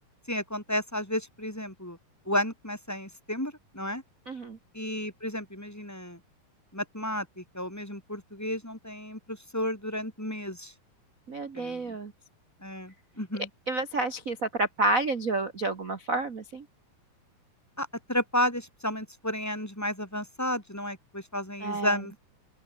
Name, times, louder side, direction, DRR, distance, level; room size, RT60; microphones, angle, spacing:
voice 1, 0.3-2.0 2.3-4.0 4.7-6.2 6.7-10.7 11.5-12.0 12.6-13.5 17.8-22.2, left 1 dB, 5° left, 4.4 m, -32 dB
voice 2, 4.3-4.6 11.3-12.1 13.7-16.6 21.6-21.9, right 2 dB, 85° right, 0.7 m, -29 dB
open air
omnidirectional pair, 4.1 m